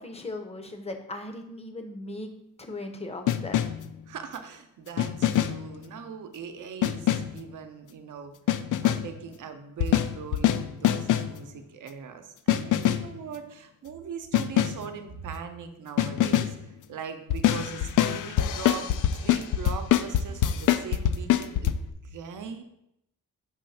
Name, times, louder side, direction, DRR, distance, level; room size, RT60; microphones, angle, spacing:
voice 1, 0.0-2.3 2.6-3.7, left 2 dB, 20° left, 6 dB, 0.7 m, -38 dB
sound 1, 3.3-3.9 5.0-5.7 6.8-7.4 8.5-9.2 9.8-11.4 12.5-13.2 14.3-14.9 16.0-16.6 17.3-21.7, left 11 dB, 70° left, 0.5 m, -24 dB
voice 2, 4.1-8.3 8.8-18.9 19.1-22.6, right 6 dB, 70° right, 7 dB, 0.8 m, -40 dB
6.3 x 3.1 x 5.6 m, 0.81 s
wide cardioid pair, 150°, 32 cm